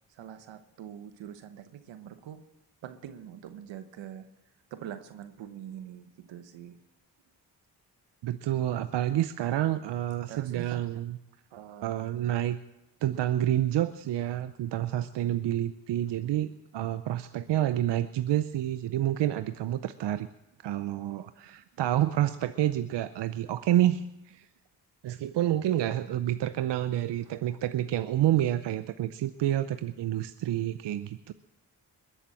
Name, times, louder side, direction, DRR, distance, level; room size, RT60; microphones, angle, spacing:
voice 1, 0.2-2.4 2.8-4.3 4.7-6.8 10.3-10.8 11.5-12.0 27.3-27.4, right 10 dB, 90° right, 10 dB, 1.1 m, -44 dB
voice 2, 8.2-11.2 11.8-12.6 13.0-20.3 20.6-24.5 25.0-31.3, right 12 dB, 75° right, 12 dB, 0.7 m, -28 dB
21.5 x 7.2 x 7.6 m, 0.94 s
supercardioid pair, 45°, 43 cm